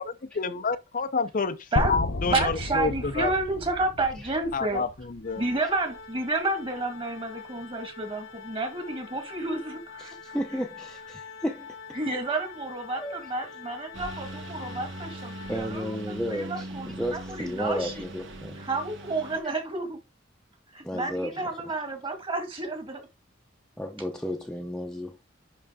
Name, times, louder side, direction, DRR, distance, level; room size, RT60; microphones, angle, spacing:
voice 1, 0.0-3.3 4.5-5.4, left 4 dB, 45° left, 0.7 m, -29 dB
sound 1, 1.8-5.8, left 2 dB, 65° left, 1.1 m, -32 dB
voice 2, 2.2-4.8 5.4-10.4 11.9-18.0 18.6-20.0 20.7-23.0, right 2 dB, 25° right, 2.0 m, -30 dB
Organ, 5.2-16.1, left 5 dB, 90° left, 2.0 m, -45 dB
voice 3, 10.0-11.7 12.9-13.3 15.5-18.6 19.4-19.5 20.8-21.7 23.8-25.2, equal, 5° left, 0.8 m, -33 dB
Engine, 13.9-19.4, right 1 dB, 70° right, 1.8 m, -40 dB
10.5 x 3.9 x 3.8 m
head